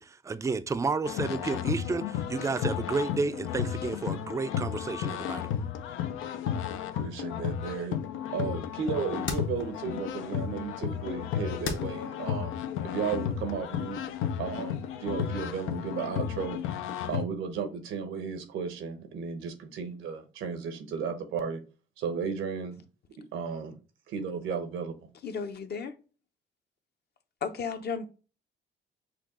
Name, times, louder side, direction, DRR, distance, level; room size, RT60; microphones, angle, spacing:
voice 1, 0.0-5.5, right 4 dB, 15° right, 0.4 m, -31 dB
sound 1, 1.0-17.2, left 9 dB, 90° left, 0.5 m, -33 dB
sound 2, 6.5-12.1, left 4 dB, 70° left, 1.3 m, -42 dB
voice 2, 6.9-8.0 8.3-14.0 14.4-16.6 17.0-21.6 22.0-22.8 23.3-23.7 24.1-25.0, right 6 dB, 85° right, 1.0 m, -34 dB
voice 3, 25.2-25.9 27.4-28.1, left 6 dB, 55° left, 0.8 m, -34 dB
5.9 x 2.3 x 3.6 m
cardioid pair, 90°, 20 cm